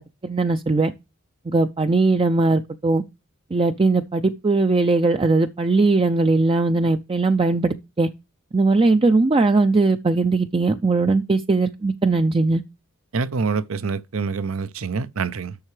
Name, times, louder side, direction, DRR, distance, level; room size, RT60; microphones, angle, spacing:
voice 1, 0.2-0.9 1.5-3.0 3.5-8.1 8.5-12.6, right 3 dB, 25° right, 0.4 m, -19 dB
voice 2, 13.1-15.6, right 5 dB, 70° right, 0.6 m, -26 dB
11.5 x 6.7 x 3.2 m
head